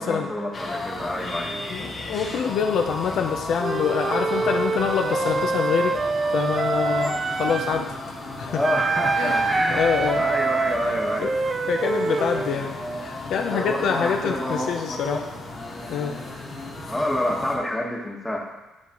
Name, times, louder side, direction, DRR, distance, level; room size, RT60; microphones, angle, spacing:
voice 1, 0.0-1.6 8.5-9.9 10.2-11.3 13.5-15.2 16.9-18.4, left 1 dB, 5° left, -1 dB, 1.2 m, -28 dB
sound 1, 0.5-17.6, left 2 dB, 35° left, 1.5 m, -35 dB
voice 2, 1.7-6.0 6.3-7.9 8.4-8.6 9.1-10.3 10.7-11.3 11.7-15.2 15.9-16.2, left 6 dB, 65° left, 3 dB, 0.5 m, -26 dB
Wind instrument woodwind instrument, 3.6-7.8 8.6-12.5, right 4 dB, 30° right, 0.3 m, -25 dB
10.5 x 4.0 x 2.9 m, 1.1 s
cardioid pair, 110°, 0 cm